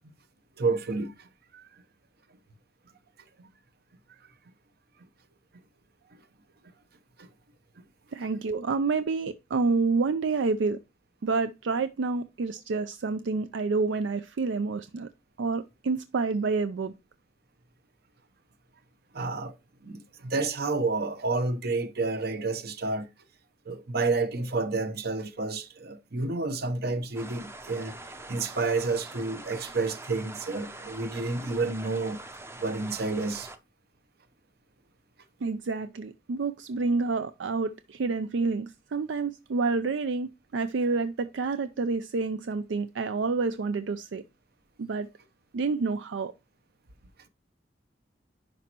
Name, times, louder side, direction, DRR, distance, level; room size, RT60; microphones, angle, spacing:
voice 1, 0.6-1.3 1.5-1.7 7.2-7.3 19.1-19.5 19.8-23.1 23.7-28.0 28.3-32.2 32.6-33.5, right 3 dB, 60° right, 0.9 m, -30 dB
voice 2, 8.1-10.8 11.2-15.1 15.4-16.9 35.4-44.2 44.8-45.1 45.5-46.3, right 4 dB, 80° right, 0.4 m, -28 dB
sound 1, 27.1-33.6, right 2 dB, 15° right, 0.6 m, -44 dB
10.5 x 5.1 x 2.9 m
head